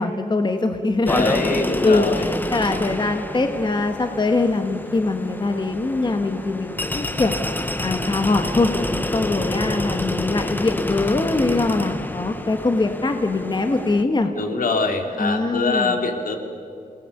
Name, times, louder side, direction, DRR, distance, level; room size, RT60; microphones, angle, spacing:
voice 1, 0.0-7.3 7.8-8.7 9.1-14.3 15.2-16.0, left 3 dB, 30° left, 6 dB, 1.4 m, -22 dB
voice 2, 1.0-2.2 14.3-16.4, left 3 dB, 75° left, 4 dB, 2.9 m, -23 dB
sound 1, 1.1-14.0, left 1 dB, 15° left, 1.1 m, -28 dB
29.0 x 19.0 x 6.7 m, 2.6 s
wide cardioid pair, 150°, 14 cm